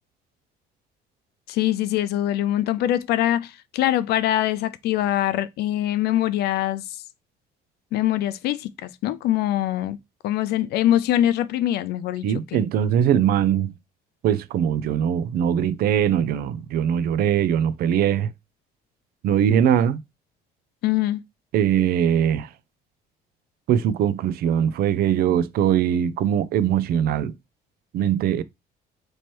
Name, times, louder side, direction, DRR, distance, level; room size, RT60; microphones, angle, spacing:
voice 1, 1.5-6.8 7.9-10.0 10.2-12.3 12.5-12.6 20.8-21.2, left 13 dB, 70° left, 0.4 m, -23 dB
voice 2, 12.2-13.7 14.2-18.3 19.2-20.0 21.5-22.5 23.7-27.3 27.9-28.4, right 9 dB, 65° right, 0.4 m, -21 dB
3.1 x 3.0 x 4.3 m
cardioid pair, 110°, 17 cm